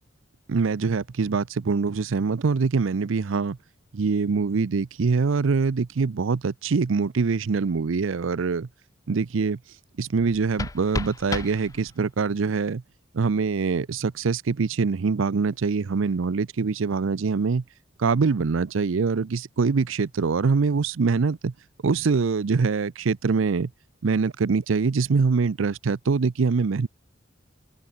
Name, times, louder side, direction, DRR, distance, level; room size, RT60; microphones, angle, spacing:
voice 1, 0.5-3.6 3.9-8.7 9.1-9.6 10.0-12.8 13.1-17.6 18.0-21.5 21.8-23.7 24.0-26.9, right 4 dB, 80° right, 0.5 m, -24 dB
sound 1, 10.2-12.2, left 3 dB, 15° left, 0.4 m, -34 dB
head